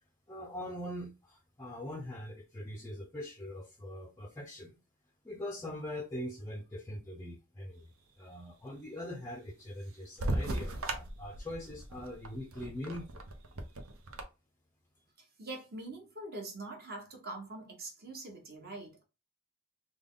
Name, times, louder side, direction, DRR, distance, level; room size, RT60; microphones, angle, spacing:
voice 1, 0.3-4.8 5.2-7.9 8.2-13.2, left 1 dB, 10° left, 0.5 m, -42 dB
sound 1, 10.2-14.2, right 1 dB, 70° right, 0.7 m, -37 dB
voice 2, 15.2-19.0, right 2 dB, 45° right, 1.2 m, -44 dB
3.4 x 2.2 x 3.7 m
head